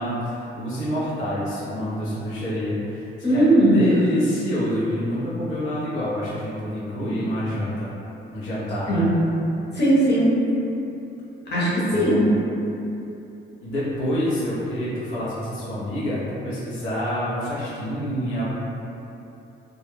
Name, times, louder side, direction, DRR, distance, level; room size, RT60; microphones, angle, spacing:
voice 1, 0.0-7.9 8.3-9.1 11.9-12.2 13.6-18.4, equal, 90° left, -9 dB, 0.7 m, -27 dB
voice 2, 3.2-3.8 8.9-9.4 9.7-10.3 11.5-12.2, right 1 dB, 55° left, -9 dB, 1.0 m, -18 dB
2.3 x 2.0 x 3.1 m, 2.9 s
cardioid pair, 90°, 20 cm